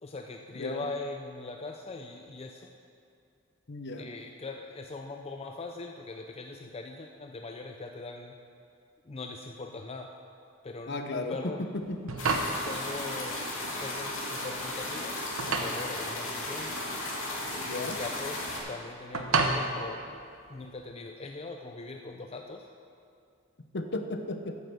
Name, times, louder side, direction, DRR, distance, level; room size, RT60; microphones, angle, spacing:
voice 1, 0.0-2.7 4.0-8.3 9.1-10.1 10.6-11.6 12.5-15.2 15.5-16.8 17.8-18.4 18.7-20.2 20.5-22.7, left 3 dB, 30° left, 3 dB, 0.4 m, -41 dB
voice 2, 0.5-0.9 3.7-4.1 10.9-12.0 17.6-18.0 23.7-24.6, left 2 dB, 55° left, 6 dB, 0.8 m, -35 dB
sound 1, 11.8-20.8, right 3 dB, 80° right, 0.9 m, -33 dB
sound 2, 12.2-18.6, left 1 dB, 75° left, 2.2 m, -35 dB
9.4 x 7.8 x 6.8 m, 2.4 s
head